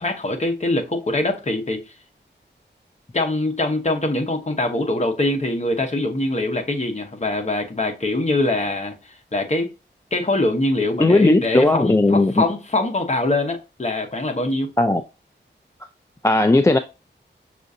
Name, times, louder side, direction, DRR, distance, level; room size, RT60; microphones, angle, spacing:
voice 1, 0.0-1.8 3.1-9.7 10.1-14.7, left 2 dB, 35° left, 1.0 m, -23 dB
voice 2, 11.0-12.4 14.8-15.0 16.2-16.8, left 2 dB, 15° left, 0.4 m, -16 dB
6.0 x 2.5 x 2.7 m
wide cardioid pair, 60°, 19 cm